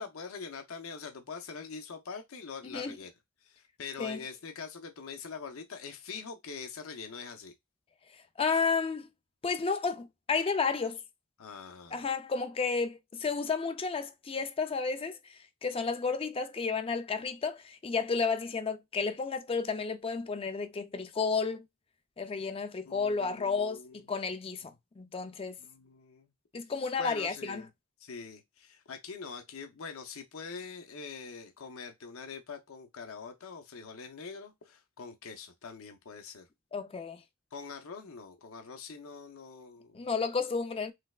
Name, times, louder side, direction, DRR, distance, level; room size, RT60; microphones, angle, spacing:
voice 1, 0.0-3.1 3.4-7.5 11.4-12.1 22.9-24.0 24.6-24.7 25.6-26.3 27.0-27.7 28.0-36.5 37.5-40.0, left 5 dB, 70° left, 0.7 m, -44 dB
voice 2, 8.4-9.1 9.4-11.0 11.9-21.6 22.2-23.8 24.1-25.6 26.5-27.6 36.7-37.2 39.9-40.9, left 5 dB, 25° left, 0.4 m, -32 dB
3.3 x 3.2 x 2.3 m
head